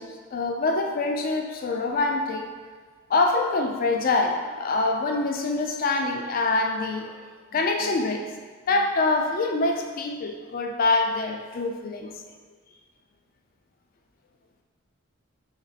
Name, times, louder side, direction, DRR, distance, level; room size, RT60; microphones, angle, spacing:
voice 1, 0.0-2.5 3.1-7.2 7.5-8.3 8.7-12.2, left 3 dB, 45° left, 4 dB, 0.3 m, -25 dB
3.1 x 2.6 x 3.9 m, 1.5 s
head